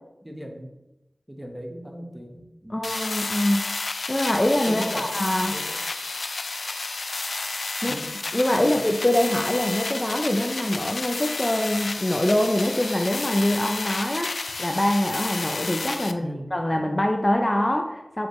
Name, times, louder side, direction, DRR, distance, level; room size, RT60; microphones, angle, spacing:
voice 1, 0.2-0.7 1.3-2.8 4.7-5.8 7.9-8.2 8.5-8.9 16.2-16.5, equal, 10° right, 2 dB, 1.2 m, -37 dB
voice 2, 2.7-3.7 4.1-5.6 7.8-8.0 8.3-18.3, left 1 dB, 25° left, 3 dB, 0.6 m, -24 dB
sound 1, 2.8-16.1, left 3 dB, 80° left, 0.4 m, -31 dB
6.9 x 5.1 x 3.1 m, 0.91 s
wide cardioid pair, 60°, 0 cm